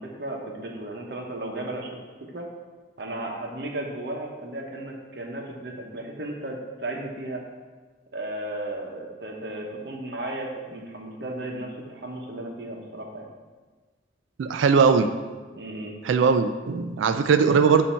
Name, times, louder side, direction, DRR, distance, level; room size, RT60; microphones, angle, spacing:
voice 1, 0.0-1.9 2.3-2.5 3.0-7.4 8.1-13.3 15.5-15.9, right 1 dB, 60° right, 1 dB, 0.9 m, -34 dB
voice 2, 14.4-15.1 16.0-17.9, right 5 dB, 80° right, 9 dB, 0.3 m, -20 dB
7.3 x 2.8 x 5.5 m, 1.3 s
head